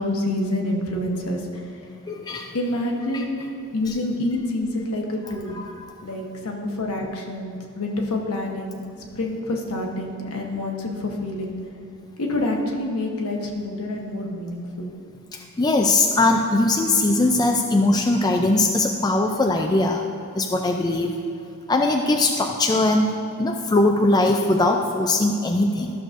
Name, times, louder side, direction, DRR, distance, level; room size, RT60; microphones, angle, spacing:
voice 1, 0.0-1.4 2.5-3.4 3.7-5.6 6.0-8.9 9.1-11.5 12.2-14.9, left 1 dB, 70° left, 0 dB, 1.1 m, -27 dB
voice 2, 2.1-2.5 3.1-3.2 5.3-5.9 15.3-20.0 20.3-21.1 21.7-25.9, left 2 dB, 20° left, 2 dB, 0.3 m, -21 dB
13.0 x 6.4 x 2.6 m, 2.7 s
head